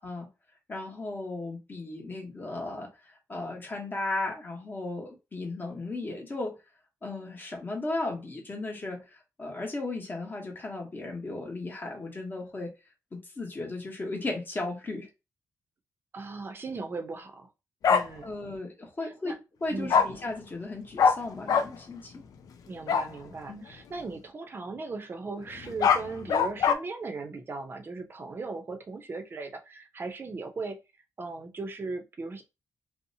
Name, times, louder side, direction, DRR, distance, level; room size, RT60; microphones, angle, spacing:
voice 1, 0.7-2.9 3.3-6.6 7.0-9.0 9.4-12.7 13.1-15.1 18.2-22.2 23.5-23.6, left 2 dB, 30° left, 1.0 m, -35 dB
voice 2, 16.1-17.5 17.9-18.3 19.0-19.4 19.7-20.0 22.7-30.8 31.2-32.4, right 3 dB, 35° right, 0.6 m, -38 dB
Bark, 17.8-18.0 19.9-20.0 21.0-21.1 21.5-21.6 22.9-23.1 25.6-26.7, left 6 dB, 65° left, 0.4 m, -21 dB
2.7 x 2.0 x 2.7 m
cardioid pair, 110°, 7 cm